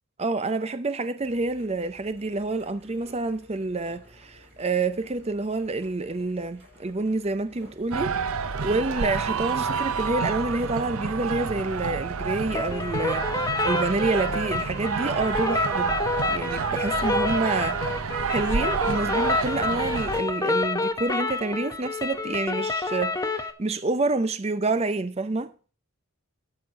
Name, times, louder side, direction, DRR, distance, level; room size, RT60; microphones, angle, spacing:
voice 1, 0.2-25.5, right 3 dB, 30° right, 0.5 m, -28 dB
sound 1, 1.2-20.3, equal, 60° right, 5.9 m, -53 dB
sound 2, 7.9-20.2, right 5 dB, 80° right, 0.7 m, -28 dB
sound 3, 12.5-23.5, left 3 dB, 15° left, 0.8 m, -29 dB
13.0 x 6.4 x 5.2 m
head